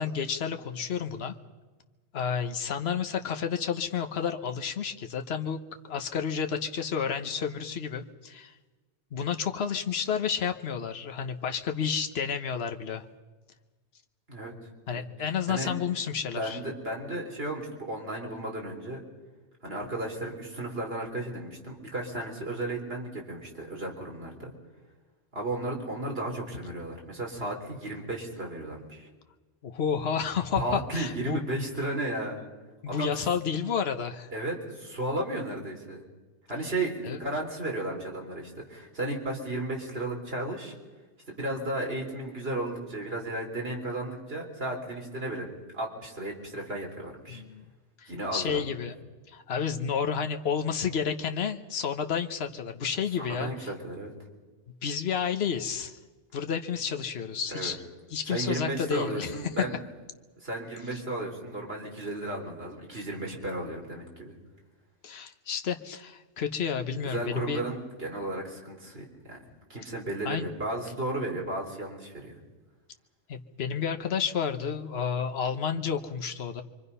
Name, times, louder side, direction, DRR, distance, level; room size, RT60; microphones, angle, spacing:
voice 1, 0.0-1.3 2.1-5.6 5.8-8.5 9.1-13.0 14.9-16.6 29.6-31.4 32.8-34.3 37.0-37.2 47.3-47.7 48.0-49.0 49.3-53.7 54.8-56.0 56.3-57.8 58.1-59.3 60.9-61.0 65.0-67.6 70.2-70.5 73.3-76.6, left 7 dB, 60° left, 6 dB, 1.3 m, -31 dB
voice 2, 16.4-19.0 19.6-24.5 25.3-29.1 30.6-32.4 32.9-33.1 34.3-36.0 36.5-40.7 41.3-45.5 45.7-47.4 48.1-48.6 53.2-54.1 57.5-57.7 58.2-59.7 60.4-64.3 67.0-69.4 69.7-72.3, right 1 dB, 60° right, 0 dB, 4.2 m, -34 dB
27.5 x 24.0 x 5.6 m, 1.3 s
omnidirectional pair, 1.2 m